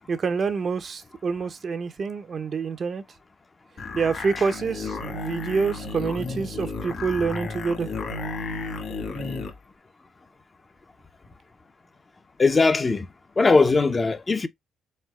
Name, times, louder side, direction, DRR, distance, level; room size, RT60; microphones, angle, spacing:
voice 1, 0.1-3.0 3.9-7.9, right 5 dB, 45° right, 0.7 m, -27 dB
sound 1, 3.8-9.6, left 3 dB, 55° left, 1.7 m, -33 dB
voice 2, 12.4-13.1 13.4-14.5, left 3 dB, 30° left, 0.6 m, -19 dB
4.4 x 4.0 x 2.3 m
cardioid pair, 90°, 0 cm